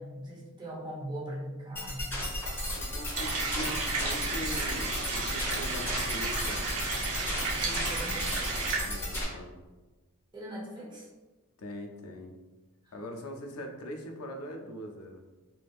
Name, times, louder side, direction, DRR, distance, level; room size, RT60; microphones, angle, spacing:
voice 1, 0.0-2.0 7.6-8.2 10.3-11.1, right 1 dB, 20° right, -6 dB, 0.8 m, -40 dB
sound 1, 1.8-9.2, left 1 dB, 10° left, 0.9 m, -34 dB
voice 2, 2.7-6.7 8.8-9.6 11.6-12.4 12.9-15.2, left 1 dB, 70° left, 2 dB, 0.5 m, -41 dB
sound 2, 3.1-8.8, right 3 dB, 85° right, 0.6 m, -33 dB
3.4 x 2.8 x 2.3 m, 1.2 s
head